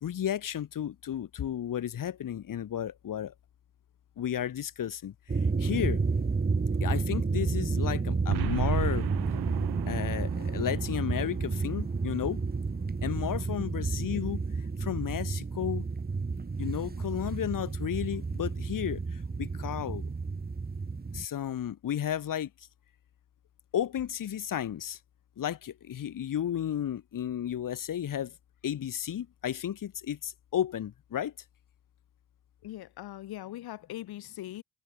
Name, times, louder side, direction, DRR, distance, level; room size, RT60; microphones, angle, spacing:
voice 1, 0.0-3.3 4.2-5.1 5.6-6.0 6.8-9.1 9.9-12.4 13.0-14.4 14.8-15.9 16.6-20.1 21.1-22.5 23.7-25.0 25.4-28.3 28.6-31.3, left 10 dB, 55° left, 2.7 m, -33 dB
sound 1, 5.3-21.2, right 4 dB, 25° right, 2.3 m, -31 dB
Boom, 8.3-12.7, right 18 dB, 80° right, 1.5 m, -37 dB
voice 2, 32.6-34.6, left 14 dB, 75° left, 4.9 m, -41 dB
supercardioid pair, 70°, 38 cm